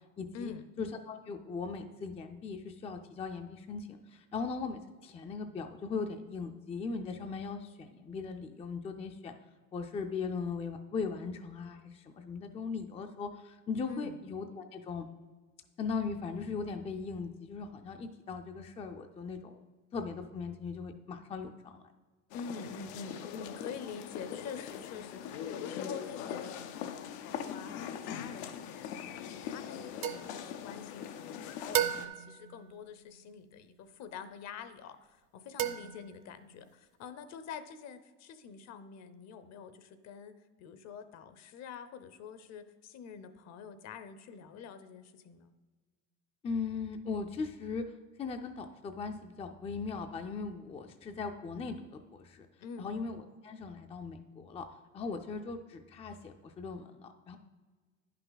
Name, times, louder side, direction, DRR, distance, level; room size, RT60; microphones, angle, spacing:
voice 1, 0.2-0.5 0.8-9.3 9.7-15.1 15.8-19.6 19.9-21.8 46.4-47.8 48.2-52.5 52.8-54.7 54.9-57.4, left 5 dB, 20° left, 6 dB, 0.4 m, -39 dB
sound 1, 22.3-32.1, left 8 dB, 90° left, 0.7 m, -41 dB
voice 2, 22.3-28.8 29.1-40.3 40.6-45.5 52.6-52.9, left 6 dB, 55° left, 11 dB, 0.8 m, -46 dB
sound 2, 30.0-31.3 31.7-33.6 35.6-36.6, right 11 dB, 45° right, 0.6 m, -36 dB
10.0 x 5.8 x 4.0 m, 1.4 s
cardioid pair, 135°, 33 cm